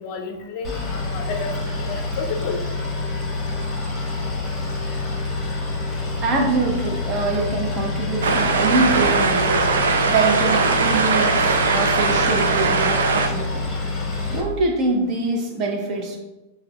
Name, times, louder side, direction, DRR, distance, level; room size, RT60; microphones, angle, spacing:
voice 1, 0.0-2.6, left 4 dB, 45° left, 4 dB, 0.5 m, -31 dB
Boat Water vehicle, 0.6-14.4, left 3 dB, 15° left, 1.0 m, -27 dB
voice 2, 6.2-9.7 10.1-13.6 14.3-16.2, right 3 dB, 35° right, 1 dB, 0.8 m, -24 dB
sound 1, 8.2-13.3, right 4 dB, 65° right, 0.4 m, -20 dB
6.2 x 2.3 x 2.3 m, 1.1 s
figure-of-eight pair, 95°, 0 cm